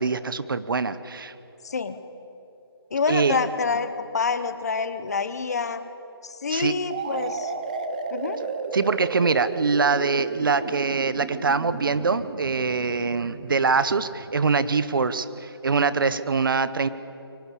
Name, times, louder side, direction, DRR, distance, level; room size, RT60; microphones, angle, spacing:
voice 1, 0.0-1.3 3.1-3.4 6.5-6.7 8.7-16.9, right 4 dB, 55° right, 14 dB, 1.0 m, -24 dB
voice 2, 1.6-2.0 2.9-5.8 6.2-7.5 8.1-8.4, left 5 dB, 40° left, 12 dB, 1.0 m, -27 dB
sound 1, 6.9-14.6, right 4 dB, 20° right, 0.8 m, -33 dB
23.5 x 18.0 x 8.4 m, 2.9 s
hypercardioid pair, 170°, 14 cm